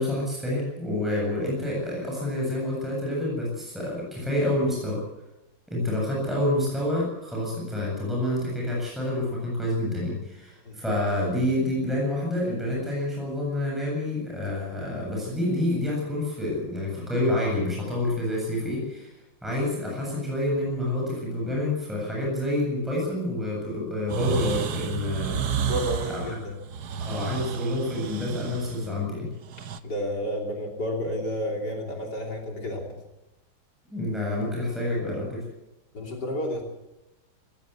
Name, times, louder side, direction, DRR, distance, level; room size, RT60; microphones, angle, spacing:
voice 1, 0.0-5.0 5.7-25.6 26.1-26.3 27.1-29.3 33.9-35.4, left 1 dB, ahead, -4 dB, 7.7 m, -28 dB
sound 1, 24.1-29.8, right 7 dB, 55° right, 1.4 m, -31 dB
voice 2, 25.6-26.6 29.8-33.0 35.9-36.6, equal, 50° left, 1 dB, 3.6 m, -31 dB
20.0 x 16.5 x 8.4 m, 0.97 s
omnidirectional pair, 2.3 m